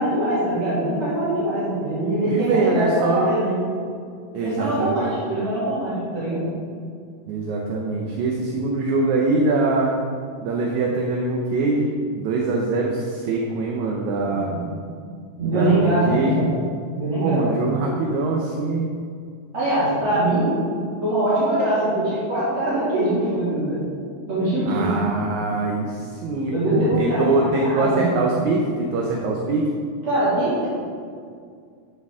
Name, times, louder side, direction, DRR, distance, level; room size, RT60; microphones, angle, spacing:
voice 1, 0.0-3.6 4.4-6.4 14.5-14.6 15.4-16.6 16.9-17.5 19.5-20.6 21.0-23.8 24.3-25.0 26.5-27.3 27.6-28.1 30.0-30.7, right 1 dB, 60° right, -11 dB, 3.9 m, -22 dB
voice 2, 2.2-3.4 4.3-5.1 7.3-10.0 10.4-11.9 12.2-14.5 15.4-16.4 17.2-18.9 24.7-29.7, right 3 dB, 75° right, -1 dB, 2.2 m, -23 dB
13.0 x 6.7 x 3.7 m, 2.2 s
omnidirectional pair, 3.5 m